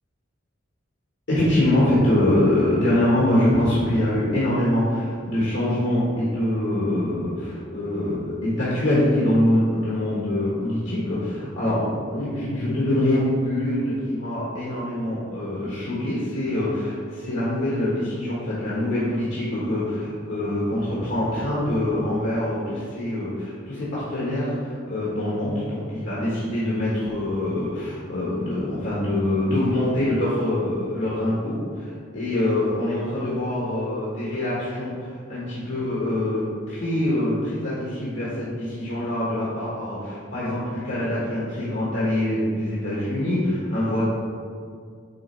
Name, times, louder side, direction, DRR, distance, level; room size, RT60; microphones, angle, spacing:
voice 1, 1.3-44.0, left 1 dB, 80° left, -8 dB, 1.6 m, -24 dB
8.6 x 3.1 x 4.4 m, 2.1 s
head